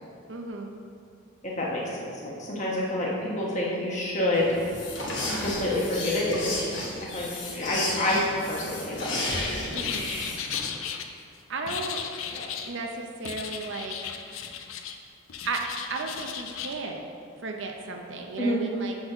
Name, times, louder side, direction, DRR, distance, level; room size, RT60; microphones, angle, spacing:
voice 1, 0.3-0.7 9.7-10.1 11.5-12.0 12.7-14.0 15.5-15.6 15.9-17.1 17.4-19.0, right 3 dB, 60° right, 3 dB, 0.6 m, -34 dB
voice 2, 1.4-4.6 5.4-6.5 7.0-7.3 7.5-9.1 12.3-12.4 18.4-18.6, left 1 dB, 35° left, -4 dB, 1.3 m, -28 dB
sound 1, 4.3-10.7, left 2 dB, 55° left, 1.2 m, -33 dB
sound 2, 9.7-11.0 11.7-12.7 13.2-15.0 15.3-16.7, left 8 dB, 75° left, 0.5 m, -35 dB
6.1 x 4.1 x 6.1 m, 2.3 s
head